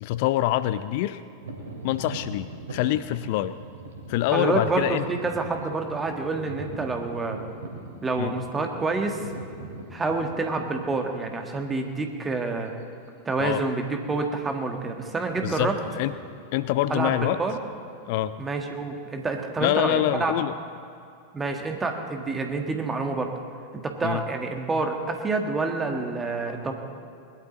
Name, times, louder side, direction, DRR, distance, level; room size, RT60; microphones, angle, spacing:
voice 1, 0.0-1.2 1.8-3.6 4.1-5.0 8.2-8.3 13.4-13.6 15.4-16.1 16.5-17.4 18.1-18.4 19.6-20.5 24.0-24.2, left 14 dB, 50° left, 14 dB, 0.4 m, -25 dB
sound 1, 1.4-11.2 11.8-11.9 12.6-12.8 13.1-13.3 14.0-14.5 14.8-18.2, right 2 dB, 65° right, 2.3 m, -41 dB
voice 2, 4.3-7.4 8.0-9.3 9.9-12.7 13.3-15.7 16.9-17.6 18.4-20.3 21.3-23.3 23.7-26.7, right 3 dB, 15° right, 3 dB, 1.7 m, -28 dB
20.5 x 11.5 x 4.1 m, 2.5 s
figure-of-eight pair, 90°, 0 cm